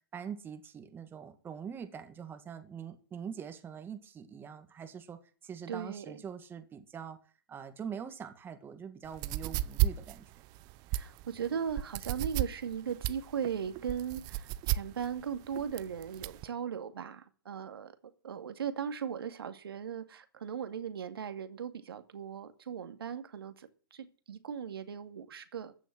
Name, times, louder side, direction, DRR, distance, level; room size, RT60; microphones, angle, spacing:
voice 1, 0.1-7.2 7.5-10.3, right 7 dB, 15° right, 1.9 m, -43 dB
voice 2, 5.7-6.1 10.9-17.9 18.2-25.7, right 7 dB, 80° right, 2.3 m, -38 dB
sound 1, 9.0-16.4, right 15 dB, 35° right, 0.7 m, -33 dB
14.5 x 7.3 x 9.1 m
hypercardioid pair, 130°, 12 cm